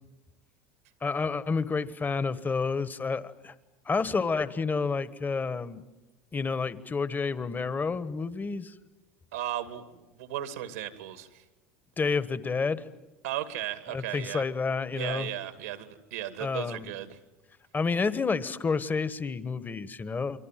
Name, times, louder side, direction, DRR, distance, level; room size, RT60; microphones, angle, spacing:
voice 1, 1.0-3.5 3.9-5.8 6.3-8.7 12.0-12.9 13.9-15.3 16.4-16.8 17.7-20.4, left 4 dB, 25° left, 15 dB, 1.4 m, -29 dB
voice 2, 9.3-11.4 13.2-14.4 14.9-17.2, right 12 dB, 85° right, 10 dB, 2.4 m, -36 dB
29.5 x 23.5 x 7.6 m, 1.0 s
hypercardioid pair, 85°, 8 cm